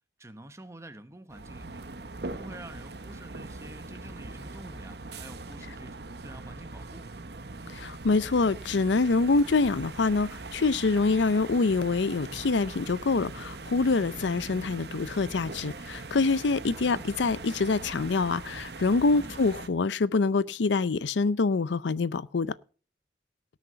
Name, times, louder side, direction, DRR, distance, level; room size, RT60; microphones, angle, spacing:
voice 1, 0.2-1.8 2.3-7.1 16.7-17.1 19.2-19.4, right 1 dB, 15° right, 1.1 m, -47 dB
sound 1, 1.3-19.7, right 3 dB, 65° right, 1.0 m, -41 dB
voice 2, 7.7-22.5, left 3 dB, 85° left, 0.5 m, -25 dB
18.0 x 6.5 x 5.5 m
head